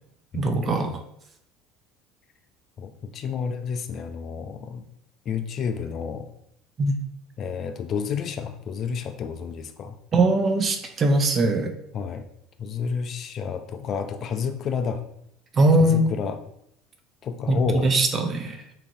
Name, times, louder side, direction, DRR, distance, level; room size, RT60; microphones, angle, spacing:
voice 1, 0.3-1.0 6.8-7.0 10.1-11.7 15.6-16.0 17.5-18.6, right 2 dB, 40° right, 7 dB, 0.5 m, -21 dB
voice 2, 2.8-4.8 5.3-6.3 7.4-10.0 11.9-12.3 12.6-15.0 15.8-16.4 17.2-17.9, left 6 dB, 50° left, 8 dB, 0.3 m, -30 dB
3.0 x 2.5 x 2.6 m, 0.75 s
hypercardioid pair, 70°, 0 cm